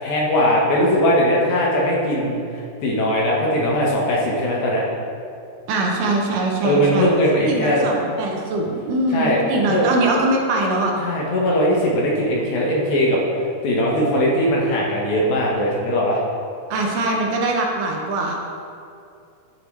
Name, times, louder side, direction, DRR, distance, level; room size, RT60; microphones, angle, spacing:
voice 1, 0.0-4.8 6.6-7.8 9.1-9.8 11.0-13.2 13.6-16.2, equal, 70° left, -4 dB, 2.1 m, -20 dB
voice 2, 5.7-7.1 7.5-10.9 16.7-18.4, right 2 dB, 75° right, 0 dB, 2.2 m, -22 dB
12.0 x 4.8 x 3.0 m, 2.5 s
omnidirectional pair, 4.1 m